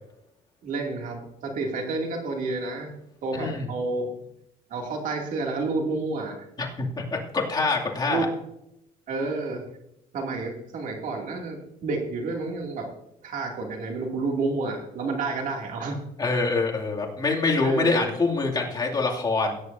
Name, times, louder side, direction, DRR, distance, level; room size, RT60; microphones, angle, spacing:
voice 1, 0.6-2.9 3.2-4.2 4.7-6.5 8.1-8.3 9.1-9.6 10.1-12.9 13.2-16.0 17.6-18.1, right 3 dB, 60° right, 2 dB, 2.6 m, -30 dB
voice 2, 3.3-3.7 6.6-8.3 16.2-19.6, left 3 dB, 30° left, -1 dB, 2.5 m, -25 dB
17.5 x 9.8 x 2.7 m, 0.83 s
cardioid pair, 105°, 15 cm